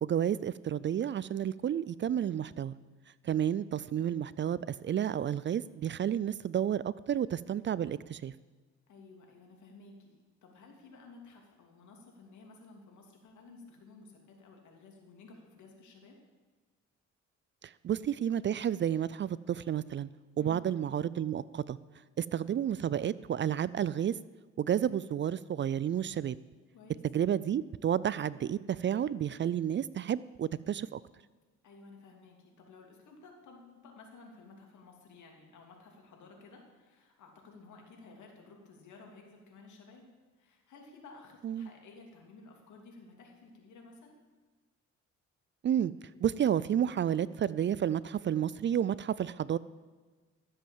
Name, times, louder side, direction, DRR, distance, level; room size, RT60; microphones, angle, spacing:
voice 1, 0.0-2.7 3.2-8.3 17.6-20.1 20.4-21.8 22.2-24.1 24.6-26.4 27.1-31.0 41.4-41.7 45.6-45.9 46.2-49.6, right 9 dB, 40° right, 19 dB, 0.4 m, -31 dB
voice 2, 8.9-16.2 20.4-20.6 26.7-27.0 31.6-40.1 40.4-44.2, left 3 dB, 75° left, 1 dB, 3.0 m, -54 dB
13.5 x 7.8 x 7.4 m, 1.3 s
cardioid pair, 90°, 30 cm